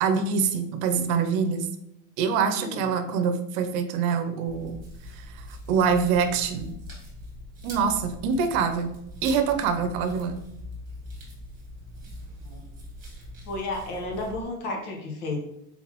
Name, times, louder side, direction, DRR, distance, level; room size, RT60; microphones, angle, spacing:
voice 1, 0.0-1.7 2.2-4.8 5.1-6.7 7.6-8.9 9.2-10.4, right 6 dB, 65° right, 7 dB, 0.7 m, -25 dB
voice 2, 2.6-2.9 12.4-12.6 13.5-15.4, left 2 dB, 80° left, 0 dB, 1.4 m, -32 dB
sound 1, 4.5-14.4, left 1 dB, 20° right, 1.5 m, -42 dB
4.0 x 3.9 x 2.9 m, 0.80 s
cardioid pair, 160°, 45 cm